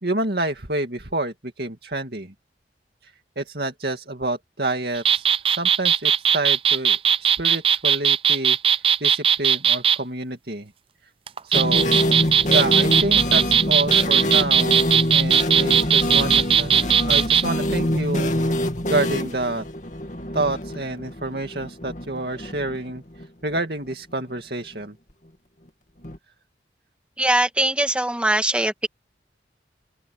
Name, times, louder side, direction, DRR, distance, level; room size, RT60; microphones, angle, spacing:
voice 1, 0.0-2.3 3.0-5.3 5.6-10.7 11.4-16.8 17.0-19.7 20.3-25.0, right 2 dB, 60° right, 2.3 m, -28 dB
sound 1, 5.0-10.0 11.3-17.4, right 8 dB, 30° right, 0.4 m, -18 dB
sound 2, 11.5-23.3 23.5-23.6 23.9-24.0 26.0-26.2, left 1 dB, 40° left, 2.7 m, -25 dB
voice 2, 27.2-28.9, right 1 dB, 5° right, 1.9 m, -21 dB
open air
head